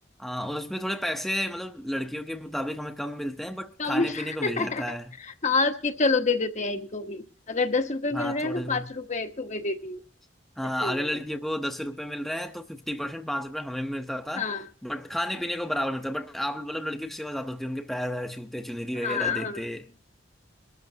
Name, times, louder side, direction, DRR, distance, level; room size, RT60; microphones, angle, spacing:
voice 1, 0.2-5.1 8.1-8.9 10.6-14.5 14.8-19.9, equal, ahead, 0.8 m, -32 dB
voice 2, 3.8-4.8 5.4-10.0 10.8-11.0 14.3-14.7 19.0-19.6, left 3 dB, 40° left, 1.1 m, -27 dB
22.5 x 13.5 x 2.8 m
head